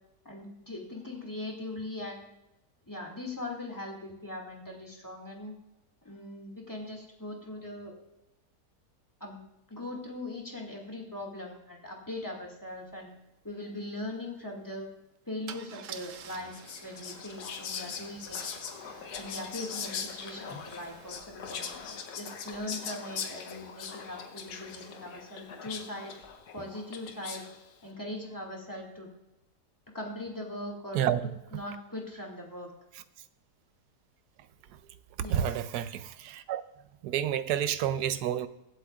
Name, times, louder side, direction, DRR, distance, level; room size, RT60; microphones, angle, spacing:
voice 1, 0.2-2.3 2.9-5.6 6.0-7.9 9.2-9.4 9.7-13.1 13.4-14.9 15.3-18.6 19.2-21.7 22.1-26.1 26.5-27.5 27.8-29.1 29.9-31.0 31.5-32.7 35.2-35.5, left 1 dB, 10° left, 2.1 m, -40 dB
Car / Engine starting / Idling, 12.8-12.9 13.2-13.5 15.5-21.2, right 8 dB, 65° right, 0.9 m, -50 dB
Whispering, 16.2-27.7, left 6 dB, 85° left, 1.5 m, -41 dB
voice 2, 35.2-36.6 37.0-38.5, right 10 dB, 85° right, 1.2 m, -29 dB
23.5 x 8.0 x 2.4 m
omnidirectional pair, 1.7 m